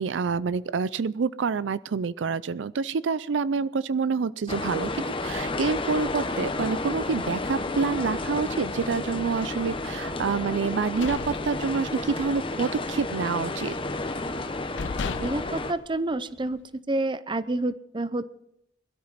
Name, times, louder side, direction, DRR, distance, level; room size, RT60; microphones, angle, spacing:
voice 1, 0.0-13.7, right 5 dB, 75° right, 17 dB, 0.4 m, -27 dB
sound 1, 4.5-15.7, left 2 dB, 30° left, 0.9 m, -31 dB
sound 2, 10.7-12.2 12.6-12.8 13.2-13.9 14.4-14.5 14.8-16.6, left 5 dB, 75° left, 0.6 m, -36 dB
voice 2, 15.2-16.6 16.9-18.2, right 2 dB, 25° right, 14 dB, 0.6 m, -28 dB
21.5 x 12.5 x 4.1 m, 0.76 s
head